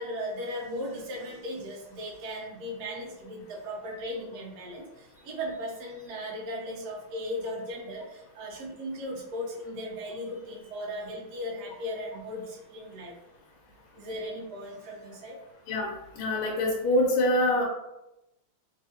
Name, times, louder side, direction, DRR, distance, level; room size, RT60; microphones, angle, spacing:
voice 1, 0.0-13.1 13.9-15.4, equal, 65° right, -2 dB, 1.1 m, -37 dB
voice 2, 16.2-17.6, left 1 dB, 75° left, -1 dB, 1.4 m, -24 dB
3.5 x 2.7 x 2.7 m, 0.91 s
omnidirectional pair, 2.3 m